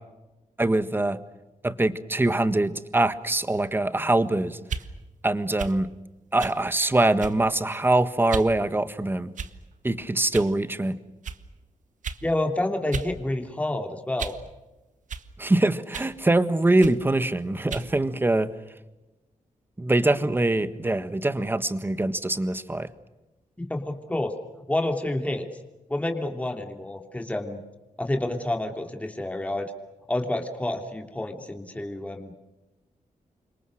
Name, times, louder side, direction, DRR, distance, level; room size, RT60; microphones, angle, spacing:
voice 1, 0.6-1.2 1.6-4.6 5.2-5.9 6.3-9.3 9.8-11.0 15.4-18.5 19.8-22.9, right 2 dB, 15° right, 12 dB, 1.5 m, -23 dB
sound 1, 4.6-4.9 5.6-5.8 6.4-6.6 7.2-7.5 8.3-8.5 9.3-9.7 10.3-10.5 11.2-11.4 12.0-12.2 12.9-13.1 13.5-14.5 15.1-15.3 15.9-16.2 16.8-17.0 17.7-17.9, right 6 dB, 65° right, 1.7 m, -35 dB
voice 2, 12.2-14.3 23.6-24.3 24.7-25.5 25.9-27.6 28.0-29.7 30.1-32.3, left 1 dB, 10° left, 4 dB, 3.1 m, -29 dB
29.5 x 26.0 x 6.5 m, 1.0 s
wide cardioid pair, 140°, 14 cm